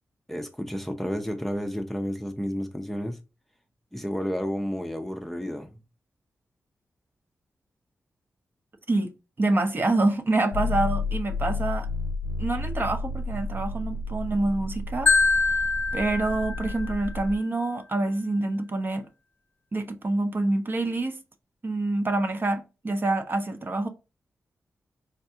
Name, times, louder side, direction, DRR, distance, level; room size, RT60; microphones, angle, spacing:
voice 1, 0.3-3.2 3.9-5.8, equal, 5° left, 0.5 m, -31 dB
voice 2, 9.4-11.9 12.4-15.1 15.9-19.1 19.7-21.2 21.6-23.9, right 2 dB, 40° right, 0.7 m, -26 dB
sound 1, 10.5-17.4, left 3 dB, 85° left, 0.4 m, -31 dB
Marimba xylophone, 15.1-17.1, left 3 dB, 40° left, 0.7 m, -24 dB
3.5 x 2.2 x 2.7 m
cardioid pair, 55°, 5 cm